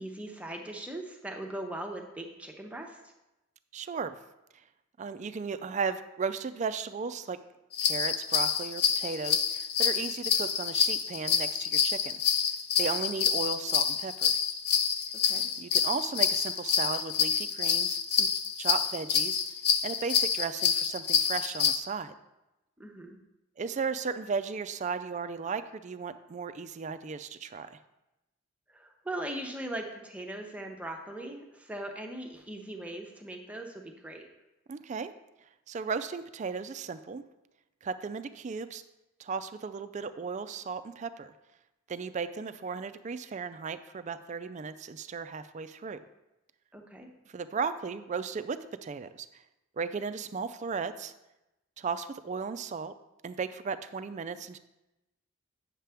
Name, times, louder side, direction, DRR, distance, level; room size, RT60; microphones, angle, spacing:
voice 1, 0.0-3.1 15.2-15.5 22.8-23.2 28.7-34.3 46.7-47.1, right 1 dB, 5° right, 2 dB, 0.7 m, -40 dB
voice 2, 3.7-4.2 5.0-7.4 7.8-12.2 12.8-14.4 15.6-18.3 18.6-19.4 19.8-22.1 23.6-27.8 34.7-35.1 35.7-37.2 37.8-38.8 39.2-41.3 41.9-46.0 47.3-49.4 49.8-51.1 51.8-52.9 53.2-54.6, right 5 dB, 35° right, 12 dB, 0.3 m, -35 dB
sound 1, 7.7-21.8, left 7 dB, 50° left, 0.5 m, -27 dB
9.0 x 6.5 x 3.4 m, 0.96 s
head